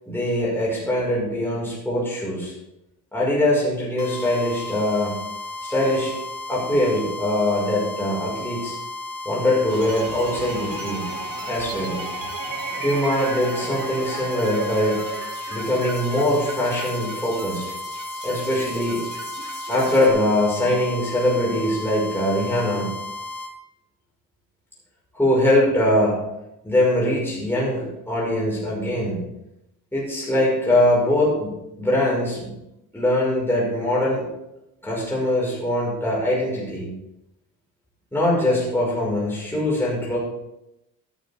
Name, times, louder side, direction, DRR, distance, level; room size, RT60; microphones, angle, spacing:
voice 1, 0.1-2.5 3.1-5.2 5.6-6.1 6.5-8.8 9.3-11.1 11.5-12.0 12.8-15.0 15.5-17.6 18.2-19.0 19.7-22.9 25.1-26.2 26.6-29.2 29.9-32.5 32.9-34.3 34.8-36.9 38.1-40.2, left 1 dB, 5° left, -6 dB, 5.3 m, -22 dB
sound 1, 4.0-23.5, left 2 dB, 45° left, 2.1 m, -34 dB
sound 2, 9.7-20.1, right 4 dB, 60° right, 3.7 m, -35 dB
13.0 x 11.5 x 3.6 m, 0.88 s
cardioid pair, 115°, 36 cm